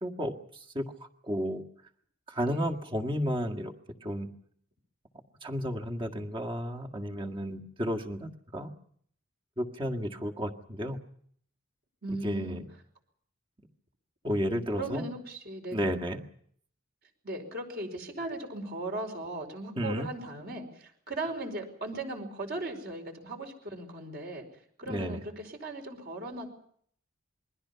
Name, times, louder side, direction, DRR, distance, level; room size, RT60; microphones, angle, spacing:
voice 1, 0.0-0.8 1.2-1.6 2.3-3.7 4.0-4.3 5.4-8.7 9.6-11.0 12.1-12.6 14.2-15.1 15.7-16.2 19.8-20.1 24.9-25.2, equal, 25° right, 2 dB, 1.8 m, -32 dB
voice 2, 2.4-3.1 12.0-12.6 14.7-15.9 17.2-24.4 24.8-26.5, right 2 dB, 50° right, 4 dB, 5.0 m, -38 dB
27.5 x 22.0 x 5.7 m, 0.63 s
head